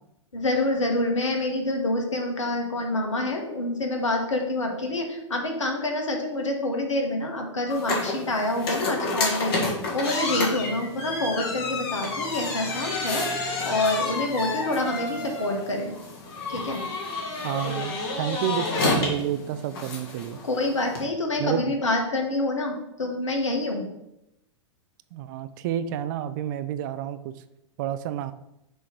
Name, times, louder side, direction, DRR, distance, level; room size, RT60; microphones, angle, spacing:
voice 1, 0.3-9.6 9.9-13.3 13.6-15.9 16.5-16.8 20.4-23.8, left 2 dB, 75° left, 2 dB, 1.4 m, -27 dB
sound 1, 7.7-21.0, left 3 dB, 50° left, 1.7 m, -30 dB
voice 2, 17.4-20.4 21.4-21.7 25.1-27.3 27.8-28.3, right 11 dB, 40° right, 13 dB, 0.3 m, -30 dB
6.0 x 3.1 x 5.2 m, 0.87 s
figure-of-eight pair, 100°, 16 cm